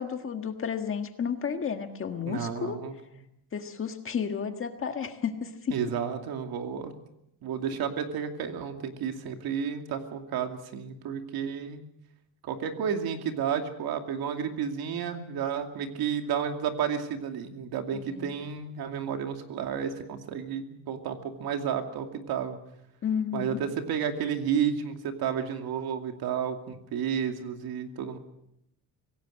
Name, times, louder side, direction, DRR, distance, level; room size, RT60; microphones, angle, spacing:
voice 1, 0.0-2.8 3.5-5.8 17.9-18.3 23.0-23.6, left 7 dB, 30° left, 6 dB, 1.6 m, -32 dB
voice 2, 2.3-2.9 5.7-6.9 7.4-11.8 12.4-22.6 23.3-28.2, right 7 dB, 60° right, 5 dB, 2.6 m, -31 dB
25.0 x 17.5 x 6.5 m, 0.79 s
cardioid pair, 155°, 41 cm